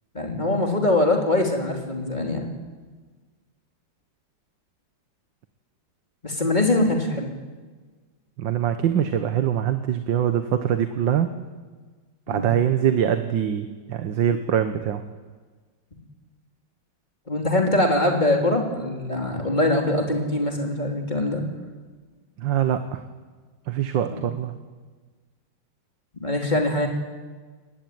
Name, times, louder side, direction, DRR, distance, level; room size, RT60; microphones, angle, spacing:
voice 1, 0.1-2.5 6.2-7.3 12.3-12.5 17.3-21.4 24.1-24.2 26.1-26.9, left 2 dB, 25° left, 1 dB, 3.4 m, -23 dB
voice 2, 8.4-11.3 12.3-15.0 22.4-23.0 23.7-24.5, right 9 dB, 90° right, 9 dB, 1.8 m, -23 dB
22.0 x 18.0 x 9.5 m, 1.4 s
omnidirectional pair, 2.0 m